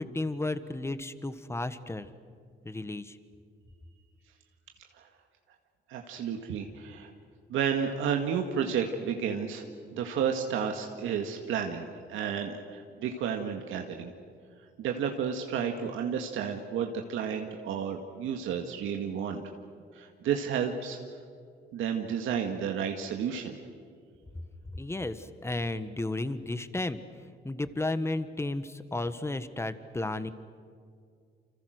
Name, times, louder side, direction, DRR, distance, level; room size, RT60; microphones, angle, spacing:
voice 1, 0.0-2.1 2.6-3.2 24.7-27.0 27.4-30.3, left 2 dB, 15° left, 12 dB, 1.4 m, -33 dB
voice 2, 5.9-7.1 7.5-9.6 9.9-14.1 14.8-19.4 19.9-21.0 21.7-23.6, right 7 dB, 85° right, 3 dB, 1.9 m, -31 dB
29.0 x 26.5 x 6.5 m, 2.2 s
cardioid pair, 90°, 20 cm